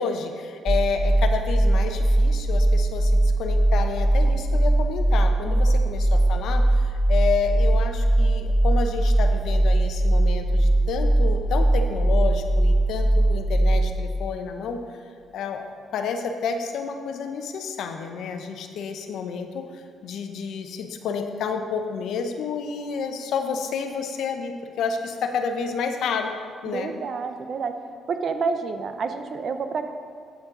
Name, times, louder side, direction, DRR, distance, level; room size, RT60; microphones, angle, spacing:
voice 1, 0.0-14.8 15.3-26.3 26.6-26.9, left 5 dB, 75° left, 6 dB, 0.7 m, -30 dB
sound 1, 0.7-14.0, right 1 dB, 15° right, 0.6 m, -20 dB
voice 2, 26.6-27.7 28.1-29.9, right 5 dB, 55° right, 8 dB, 0.7 m, -29 dB
9.3 x 7.2 x 3.8 m, 2.1 s
cardioid pair, 85°, 0 cm